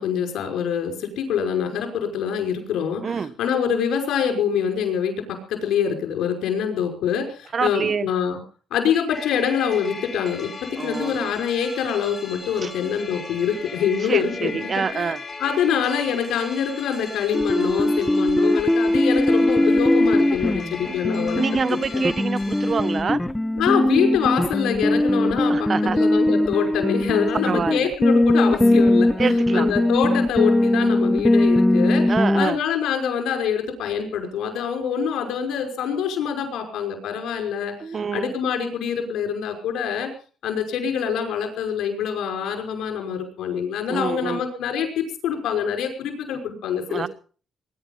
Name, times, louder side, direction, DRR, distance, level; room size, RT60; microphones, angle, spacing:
voice 1, 0.0-3.0 3.4-8.4 8.7-10.5 10.8-15.1 15.4-21.4 21.9-22.1 23.6-25.7 25.9-29.1 29.5-37.7 38.1-40.1 40.4-47.1, left 7 dB, 80° left, 5 dB, 5.5 m, -25 dB
voice 2, 3.0-3.3 7.5-8.1 10.8-11.3 12.6-12.7 14.1-15.2 21.4-23.2 25.5-26.0 27.4-27.9 29.2-29.7 32.1-32.6 37.8-38.3 43.9-44.4 46.9-47.1, right 5 dB, 45° right, 16 dB, 1.1 m, -26 dB
sound 1, 9.1-23.0, left 4 dB, 30° left, 4.1 m, -37 dB
sound 2, 17.3-32.5, left 1 dB, 5° left, 0.7 m, -20 dB
22.5 x 11.0 x 5.4 m, 0.40 s
cardioid pair, 90°, 0 cm